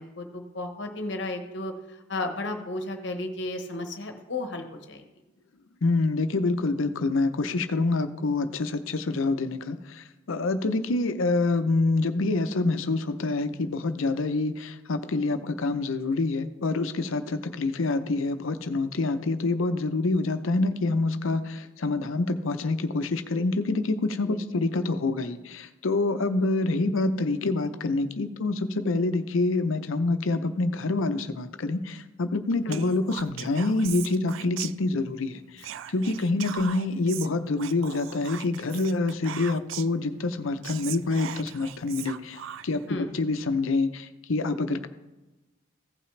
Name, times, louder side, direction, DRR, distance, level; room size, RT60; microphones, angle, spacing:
voice 1, 0.0-5.0 24.2-24.4 32.6-32.8 42.9-43.1, left 2 dB, 55° left, 5 dB, 1.0 m, -34 dB
voice 2, 5.8-44.9, left 3 dB, 75° left, 10 dB, 0.6 m, -26 dB
Whispering, 32.7-35.2 35.6-40.0 40.4-40.5 40.6-42.9, right 10 dB, 70° right, 0.3 m, -39 dB
15.5 x 5.7 x 3.2 m, 1.1 s
head